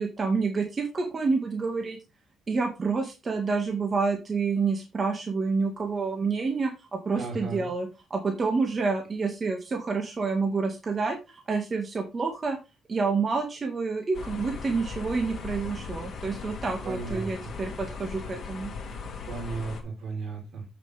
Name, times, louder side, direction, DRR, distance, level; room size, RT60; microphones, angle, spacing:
voice 1, 0.0-2.0 2.5-12.6 12.9-18.7, right 4 dB, 35° right, 3 dB, 1.9 m, -28 dB
voice 2, 7.2-7.7 16.8-17.5 19.3-20.7, right 4 dB, 70° right, 2 dB, 4.1 m, -35 dB
sound 1, 14.1-19.8, left 5 dB, 50° left, 2.7 m, -38 dB
8.3 x 7.1 x 3.5 m, 0.28 s
cardioid pair, 90°, 0 cm